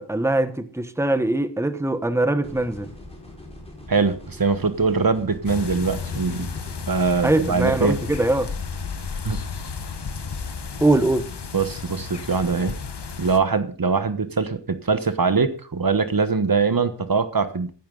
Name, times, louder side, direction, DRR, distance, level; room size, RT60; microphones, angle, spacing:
voice 1, 0.0-2.9 7.2-8.5 10.8-11.3, right 2 dB, 5° right, 1.2 m, -22 dB
sound 1, 2.4-6.8, left 1 dB, 15° left, 5.0 m, -42 dB
voice 2, 3.9-6.5 6.9-8.0 9.2-9.4 11.5-12.8 13.2-17.7, right 4 dB, 50° right, 1.2 m, -22 dB
sound 2, 5.5-13.4, left 5 dB, 65° left, 1.4 m, -33 dB
14.0 x 11.0 x 4.0 m
wide cardioid pair, 75°, 43 cm